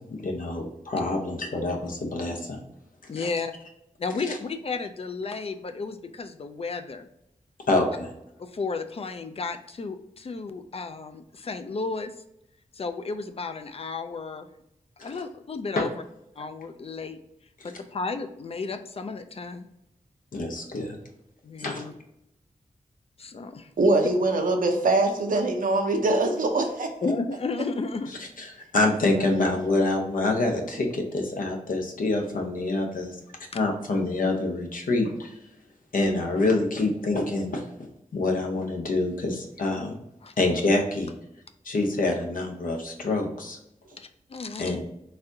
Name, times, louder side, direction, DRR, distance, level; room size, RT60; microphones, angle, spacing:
voice 1, 0.2-2.6 3.2-3.3 4.3-4.4 7.7-8.1 15.0-15.1 15.8-15.9 20.3-21.0 21.6-21.8 28.4-33.2 33.5-35.3 35.9-37.9 38.1-39.9 40.4-41.1 41.6-43.6 44.6-44.8, left 2 dB, 75° left, 0.7 m, -26 dB
voice 2, 3.1-3.5 4.0-7.1 8.4-12.1 12.7-14.5 15.0-15.9 16.4-17.2 17.6-19.7 21.4-21.9 23.2-23.7 27.0-28.1 40.2-40.3 44.0-44.8, left 4 dB, 45° left, 0.4 m, -33 dB
voice 3, 23.8-27.1 29.2-29.6 43.8-44.0, right 2 dB, 75° right, 0.7 m, -23 dB
4.0 x 2.6 x 2.7 m
wide cardioid pair, 65°, 14 cm